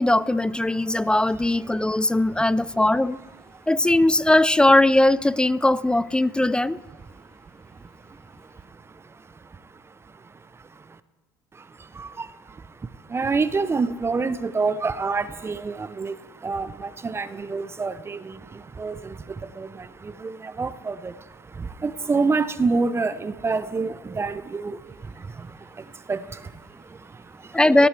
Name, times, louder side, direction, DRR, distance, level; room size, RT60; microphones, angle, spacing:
voice 1, 0.0-3.2 3.7-6.8 27.5-27.9, left 1 dB, 5° left, 20 dB, 0.3 m, -19 dB
voice 2, 0.7-1.4 1.7-3.1 3.5-3.7 7.0-11.0 11.5-27.9, right 4 dB, 20° right, 14 dB, 0.7 m, -30 dB
17.5 x 13.0 x 3.3 m, 1.3 s
hypercardioid pair, 75°, 12 cm